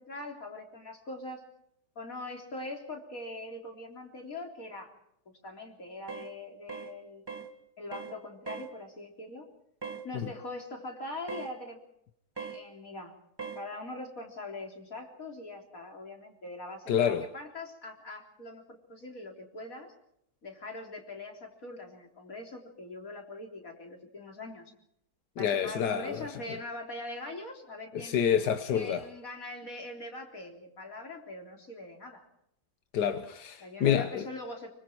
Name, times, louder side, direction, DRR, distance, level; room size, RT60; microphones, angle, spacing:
voice 1, 0.0-1.4 2.0-4.9 5.3-7.3 7.8-9.5 10.0-11.8 12.4-13.1 13.6-19.9 20.4-24.7 25.4-28.3 28.7-32.3 33.6-34.7, left 2 dB, 55° left, 4.3 m, -42 dB
sound 1, 6.1-6.3 6.7-6.9 7.3-7.5 7.9-8.2 8.5-8.7 9.8-10.1 11.3-11.5 12.4-12.6 13.4-13.6, right 5 dB, 15° right, 1.6 m, -40 dB
voice 2, 16.9-17.3 25.4-26.3 27.9-29.0 32.9-34.2, left 8 dB, 90° left, 1.6 m, -28 dB
26.0 x 24.5 x 4.6 m
omnidirectional pair, 1.7 m